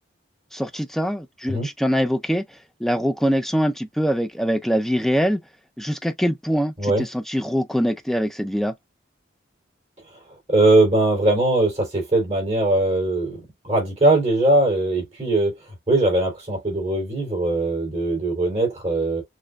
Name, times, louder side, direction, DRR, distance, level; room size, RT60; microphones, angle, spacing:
voice 1, 0.5-2.5 2.8-5.4 5.8-8.7, equal, ahead, 0.5 m, -23 dB
voice 2, 10.5-15.5 15.9-19.2, right 2 dB, 30° right, 3.2 m, -20 dB
6.4 x 3.0 x 2.2 m
head